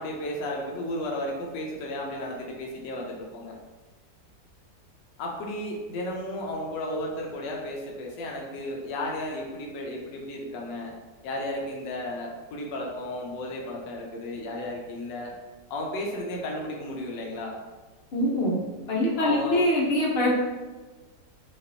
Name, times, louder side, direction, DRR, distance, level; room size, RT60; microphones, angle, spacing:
voice 1, 0.0-3.5 5.2-10.9 11.2-15.4 15.7-17.5 19.2-19.7, left 1 dB, 85° left, -1 dB, 1.3 m, -34 dB
voice 2, 18.1-18.6 18.9-20.3, left 1 dB, 50° left, -3 dB, 0.8 m, -23 dB
5.0 x 2.4 x 2.7 m, 1.2 s
omnidirectional pair, 1.9 m